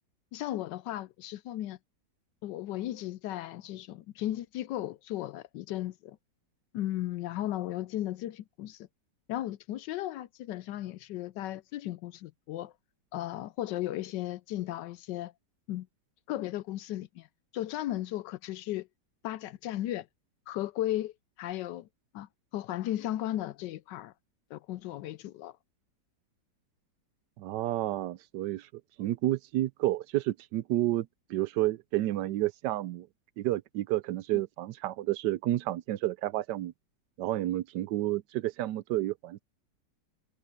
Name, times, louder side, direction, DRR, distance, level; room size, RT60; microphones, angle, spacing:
voice 1, 0.3-1.8 2.4-6.2 6.7-8.9 9.3-12.7 13.1-15.3 15.7-15.9 16.3-17.3 17.5-18.9 19.2-20.1 20.5-21.1 21.4-21.9 22.1-24.1 24.5-25.6 34.3-34.4, left 14 dB, 80° left, 1.2 m, -35 dB
voice 2, 27.4-28.7 29.0-33.1 33.4-36.7 37.2-39.4, right 15 dB, 75° right, 1.2 m, -30 dB
omnidirectional pair, 1.9 m